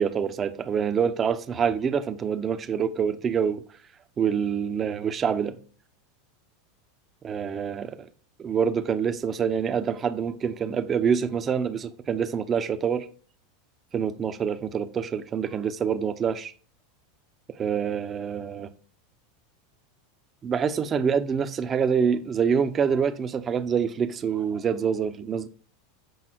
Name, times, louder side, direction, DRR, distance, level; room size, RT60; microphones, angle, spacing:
voice 1, 0.0-3.6 4.2-5.6 7.2-8.1 8.4-13.1 13.9-16.5 17.6-18.7 20.4-25.5, right 7 dB, 30° right, 0.9 m, -26 dB
8.1 x 5.4 x 4.5 m
hypercardioid pair, 95°, 0 cm